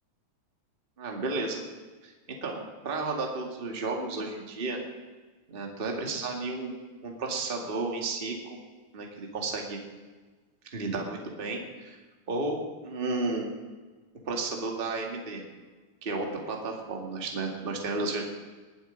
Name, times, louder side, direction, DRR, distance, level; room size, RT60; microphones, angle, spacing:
voice 1, 1.0-1.6 2.0-4.8 5.5-6.7 7.0-8.6 8.9-9.8 10.7-12.0 12.3-13.5 14.3-15.4 16.0-18.2, right 3 dB, 20° right, 1 dB, 1.7 m, -33 dB
22.0 x 8.1 x 5.2 m, 1.3 s
omnidirectional pair, 3.8 m